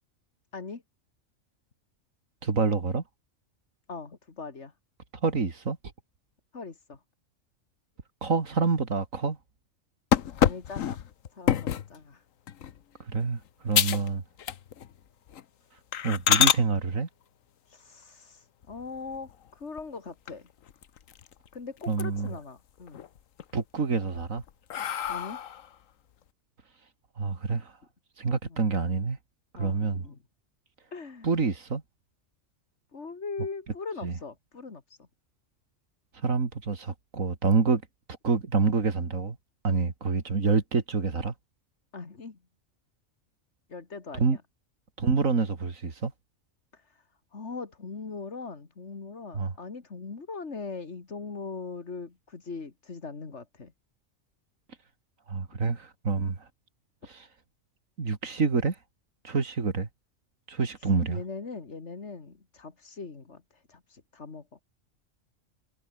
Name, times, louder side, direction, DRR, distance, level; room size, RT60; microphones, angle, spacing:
voice 1, 2.4-3.0 5.2-5.8 8.2-9.4 13.1-14.2 16.0-17.1 21.9-22.4 23.5-24.4 27.2-27.7 28.2-29.2 29.5-30.0 31.2-31.8 34.0-34.1 36.2-37.8 38.2-39.4 39.6-41.3 44.2-44.4 45.0-46.1 49.3-49.5 55.3-56.5 57.1-57.3 58.0-58.8 59.2-59.9 60.5-61.2, right 4 dB, 85° right, 2.8 m, -27 dB
voice 2, 3.9-4.7 6.5-7.0 10.4-11.1 11.3-12.2 17.7-20.5 21.5-23.0 25.1-25.4 28.5-28.6 29.6-30.2 30.9-31.3 32.9-35.1 41.9-42.4 43.7-44.4 46.7-47.0 47.3-53.7 60.8-64.6, left 4 dB, 60° left, 2.5 m, -40 dB
sound 1, 10.1-11.9 12.5-12.8 13.2-13.3 13.7-14.1 14.4-14.9 15.3-15.4 15.9-16.6 18.6-19.3 19.8-19.9 20.3-20.4 20.7-21.5 21.8-22.4 22.8-23.4 24.0-25.7, left 9 dB, 85° left, 1.4 m, -27 dB
omnidirectional pair, 1.3 m